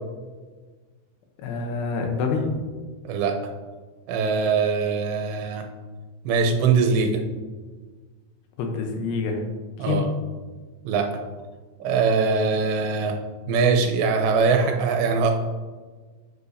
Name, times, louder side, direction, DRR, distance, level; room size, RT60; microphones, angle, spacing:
voice 1, 1.4-2.6 8.6-9.4 9.8-10.1, left 4 dB, 75° left, 3 dB, 2.8 m, -26 dB
voice 2, 3.0-3.4 4.1-5.7 6.3-7.2 9.8-10.1 10.8-11.1 11.8-13.2 13.5-15.3, right 5 dB, 90° right, 3 dB, 3.1 m, -22 dB
8.2 x 7.5 x 2.7 m, 1.4 s
omnidirectional pair, 4.9 m